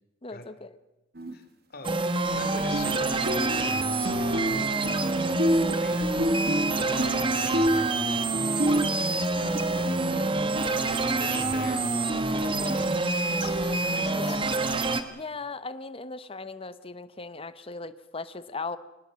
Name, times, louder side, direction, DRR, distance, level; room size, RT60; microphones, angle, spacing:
voice 1, 0.2-0.8 14.1-14.6 15.1-18.8, left 3 dB, 30° left, 13 dB, 0.9 m, -38 dB
sound 1, 1.2-1.3 2.7-3.0 3.3-5.1 5.4-8.9, equal, 50° right, 1.6 m, -28 dB
voice 2, 1.7-5.3 5.7-7.8 8.4-9.8 11.2-11.9 12.3-14.4, left 3 dB, 50° left, 8 dB, 2.8 m, -44 dB
sound 2, 1.8-15.0, right 2 dB, 25° right, 1.3 m, -27 dB
23.0 x 20.0 x 7.6 m, 1.0 s
head